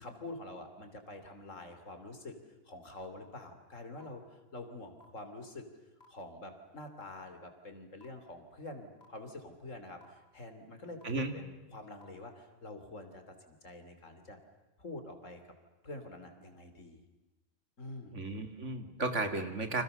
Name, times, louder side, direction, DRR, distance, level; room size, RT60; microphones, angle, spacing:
voice 1, 0.0-2.4 2.7-5.7 6.1-14.4 14.8-15.4 15.8-17.0 17.8-18.2, left 2 dB, 85° left, 7 dB, 3.6 m, -47 dB
sound 1, 3.0-3.1 4.0-4.1 5.0-5.1 6.0-6.1 7.0-7.1 8.0-8.1 9.0-9.1 10.0-10.1 11.0-11.1 12.0-12.1, left 3 dB, 55° left, 5.3 m, -58 dB
voice 2, 18.1-19.8, right 3 dB, 70° right, 7 dB, 2.7 m, -34 dB
30.0 x 26.5 x 6.8 m, 1.1 s
omnidirectional pair, 1.3 m